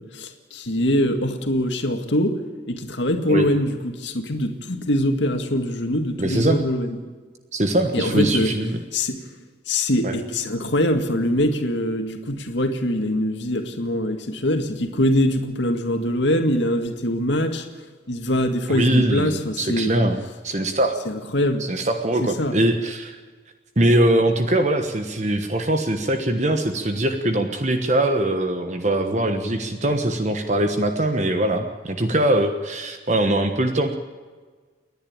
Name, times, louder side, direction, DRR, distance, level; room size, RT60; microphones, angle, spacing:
voice 1, 0.0-2.4 2.7-7.0 7.9-8.5 8.9-9.2 9.7-17.7 18.1-19.9 21.1-21.7 22.2-22.6, left 1 dB, 70° left, 6 dB, 2.1 m, -23 dB
voice 2, 6.2-6.6 7.5-8.8 10.0-10.1 18.7-20.2 20.4-21.0 21.6-23.1 23.8-33.9, right 1 dB, 35° right, 6 dB, 1.2 m, -22 dB
29.5 x 10.5 x 8.8 m, 1.5 s
head